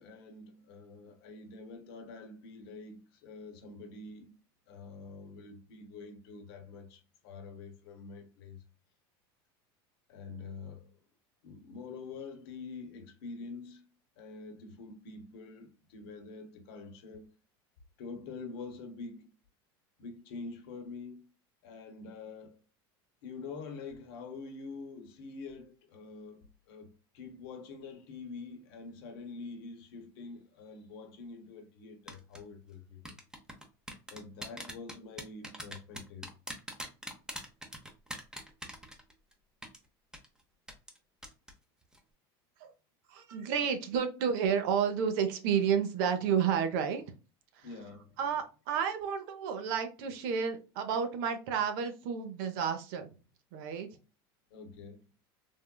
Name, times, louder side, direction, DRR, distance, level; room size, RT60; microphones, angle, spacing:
voice 1, 0.0-4.4 4.7-8.6 10.1-10.9 11.4-13.9 14.2-17.4 18.0-19.3 20.0-21.3 21.6-22.6 23.2-33.2 34.1-36.3 47.6-48.1 54.5-55.0, left 4 dB, 75° left, 0.9 m, -46 dB
sound 1, 32.1-32.4 33.0-39.3 39.6-39.8 40.1-40.3 40.7-41.0 41.2-41.5 41.8-42.0, equal, 5° right, 0.7 m, -42 dB
voice 2, 43.1-47.0 47.5-47.7 48.2-53.1 53.5-54.0, right 7 dB, 70° right, 0.7 m, -31 dB
3.5 x 2.3 x 2.2 m
supercardioid pair, 115°, 13 cm